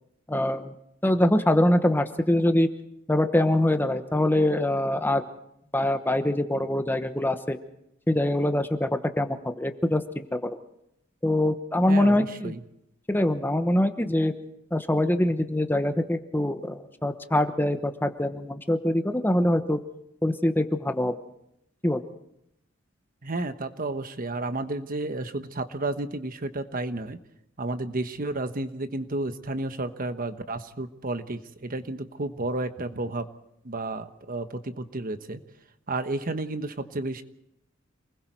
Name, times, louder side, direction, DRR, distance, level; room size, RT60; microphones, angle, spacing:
voice 1, 0.3-0.7 1.0-2.7 3.1-5.3 5.7-7.6 8.1-10.5 11.2-12.5 13.1-14.3 14.7-19.8 20.2-21.1 21.8-22.0, left 1 dB, 10° left, 8 dB, 1.0 m, -24 dB
voice 2, 11.9-12.6 23.2-27.2 27.6-33.3 33.6-35.4 35.9-37.2, right 2 dB, 45° right, 10 dB, 1.2 m, -32 dB
28.0 x 20.5 x 4.6 m, 0.79 s
head